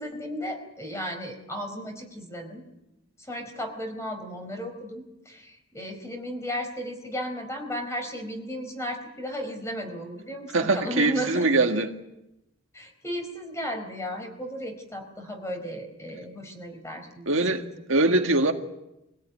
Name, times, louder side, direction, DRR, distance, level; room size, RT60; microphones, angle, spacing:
voice 1, 0.0-2.6 3.2-11.5 12.7-17.3, equal, 15° left, 4.2 m, -34 dB
voice 2, 10.5-11.9 17.3-18.5, right 2 dB, 75° right, 1.8 m, -23 dB
24.5 x 17.0 x 9.4 m
head